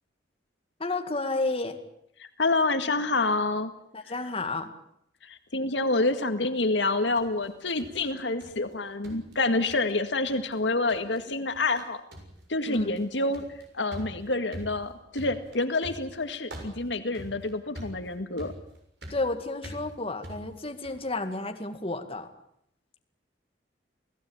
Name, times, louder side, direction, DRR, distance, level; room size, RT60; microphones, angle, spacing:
voice 1, 0.8-1.8 3.9-4.7 12.6-13.0 19.1-22.3, left 2 dB, 30° left, 6 dB, 2.1 m, -31 dB
voice 2, 2.4-3.7 5.2-12.0 12.5-13.5 13.7-18.5, left 2 dB, 75° left, 8 dB, 1.9 m, -27 dB
sound 1, 6.8-8.7 9.0-10.0 10.3-10.6 10.9-11.2 11.5-11.8 12.1-21.1, equal, 65° right, 6.9 m, -45 dB
29.0 x 17.5 x 8.8 m, 0.73 s
head